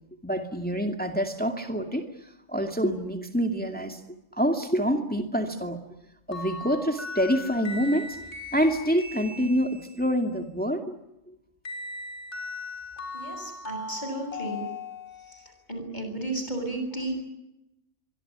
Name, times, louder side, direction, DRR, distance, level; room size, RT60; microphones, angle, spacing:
voice 1, 0.2-4.0 4.3-5.8 6.3-8.2 8.5-10.9 11.3-11.4, equal, 5° left, 5 dB, 2.3 m, -27 dB
sound 1, 6.3-10.1 11.6-15.4, left 2 dB, 60° left, 6.0 m, -38 dB
voice 2, 13.1-14.6 15.3-17.2, right 2 dB, 35° left, 6 dB, 7.7 m, -34 dB
24.5 x 24.0 x 9.0 m, 0.90 s
omnidirectional pair, 1.3 m